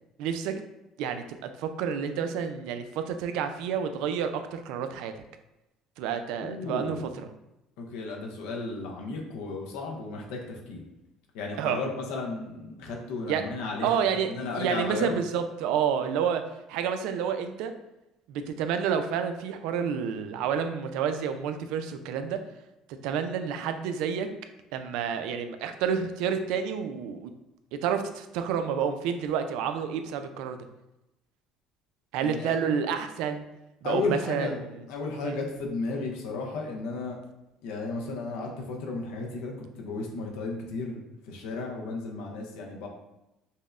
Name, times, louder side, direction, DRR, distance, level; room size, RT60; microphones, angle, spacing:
voice 1, 0.2-0.5 1.0-5.1 6.0-7.0 11.6-11.8 13.3-13.4 13.8-14.3 14.6-16.4 16.7-17.7 18.3-22.4 23.0-24.3 24.7-27.3 27.8-30.6 32.1-33.4 33.8-34.5 35.2-35.4, right 7 dB, 80° right, 8 dB, 0.3 m, -29 dB
voice 2, 6.4-7.0 7.8-10.8 11.3-15.2 32.2-32.6 33.8-34.6 34.9-37.2 37.6-42.9, left 3 dB, 85° left, 0 dB, 0.6 m, -34 dB
5.3 x 2.1 x 2.4 m, 0.93 s
supercardioid pair, 100°, 0 cm